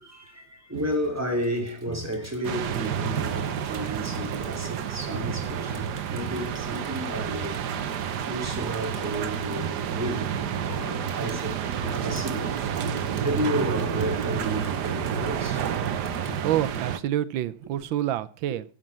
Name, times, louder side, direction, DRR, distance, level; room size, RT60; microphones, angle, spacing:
voice 1, 0.0-15.7 16.3-16.4, equal, 10° right, 3.0 m, -33 dB
Crowd, 0.7-16.8, right 2 dB, 35° right, 2.6 m, -44 dB
sound 1, 2.4-17.0, right 8 dB, 65° right, 1.4 m, -30 dB
voice 2, 16.4-18.6, right 12 dB, 90° right, 1.5 m, -27 dB
12.0 x 7.4 x 7.3 m
omnidirectional pair, 2.0 m